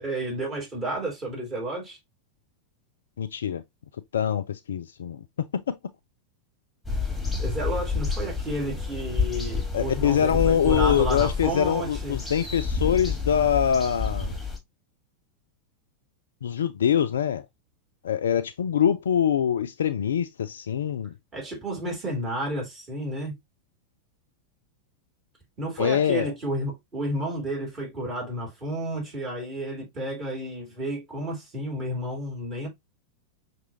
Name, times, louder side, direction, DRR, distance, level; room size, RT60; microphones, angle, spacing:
voice 1, 0.0-2.0 7.4-12.2 21.3-23.3 25.6-32.7, right 1 dB, 25° right, 3.0 m, -31 dB
voice 2, 3.2-3.6 4.1-5.3 5.5-5.8 9.7-14.4 16.4-17.5 18.0-21.1 25.8-26.3, left 8 dB, 65° left, 0.3 m, -24 dB
sound 1, 6.9-14.6, left 4 dB, ahead, 1.6 m, -29 dB
6.0 x 2.9 x 2.7 m
figure-of-eight pair, 90°, 0 cm